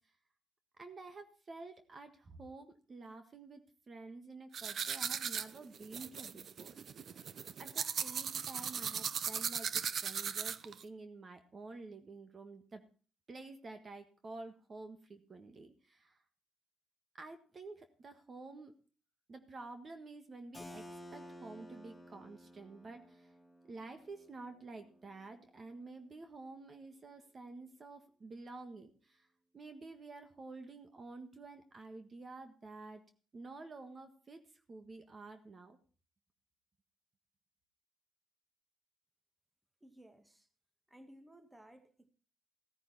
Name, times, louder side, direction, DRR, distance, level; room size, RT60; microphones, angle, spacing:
voice 1, 0.8-7.2 7.6-12.8 13.3-16.2 17.1-18.8 19.3-23.3 23.7-29.3 29.5-33.0 33.3-34.4 34.7-35.8, right 3 dB, 40° right, 1.6 m, -50 dB
sound 1, 4.5-10.8, right 7 dB, 55° right, 0.7 m, -38 dB
Keyboard (musical), 20.5-26.1, equal, 15° left, 4.4 m, -54 dB
voice 2, 39.8-40.5 40.9-42.1, right 1 dB, 10° right, 1.8 m, -58 dB
15.5 x 9.9 x 4.2 m
cardioid pair, 90°, 0 cm